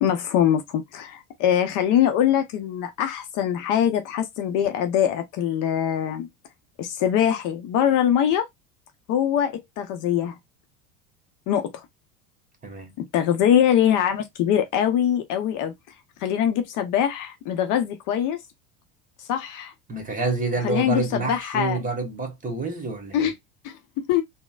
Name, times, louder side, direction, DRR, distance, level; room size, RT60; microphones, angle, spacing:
voice 1, 0.0-6.3 6.8-8.5 9.1-10.4 11.5-11.8 13.1-15.7 16.2-18.4 19.2-19.7 20.6-21.8 23.1-23.3 23.6-24.2, left 10 dB, 50° left, 0.6 m, -23 dB
voice 2, 19.9-23.3, right 3 dB, 20° right, 1.2 m, -28 dB
3.7 x 2.1 x 2.3 m
hypercardioid pair, 85°, 40 cm